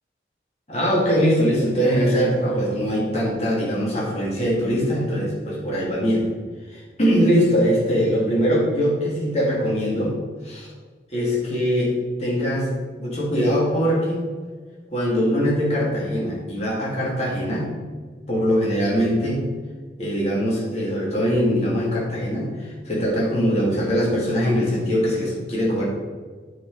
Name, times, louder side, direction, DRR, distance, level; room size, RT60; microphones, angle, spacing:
voice 1, 0.7-6.3 6.7-10.1 10.4-10.7 11.1-12.7 13.0-14.3 14.9-17.7 18.3-19.4 20.0-25.8, equal, 35° left, -5 dB, 1.9 m, -22 dB
8.6 x 4.4 x 5.1 m, 1.5 s
head